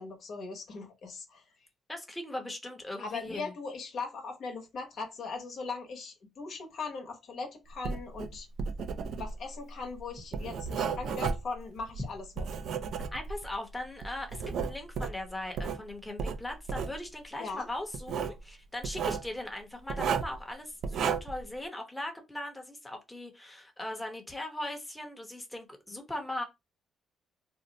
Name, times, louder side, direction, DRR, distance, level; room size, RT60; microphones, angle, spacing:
voice 1, 0.0-1.4 3.0-8.5 9.1-12.4 17.4-17.7, left 4 dB, 65° left, 1.0 m, -39 dB
voice 2, 1.9-3.5 13.1-26.4, left 1 dB, 10° left, 0.8 m, -39 dB
Writing, 7.7-13.5 14.0-15.8 16.2-17.0 17.9-18.4 18.8-19.3 19.9-20.4 20.8-21.4, right 6 dB, 70° right, 0.4 m, -33 dB
2.6 x 2.1 x 3.9 m
cardioid pair, 90°, 0 cm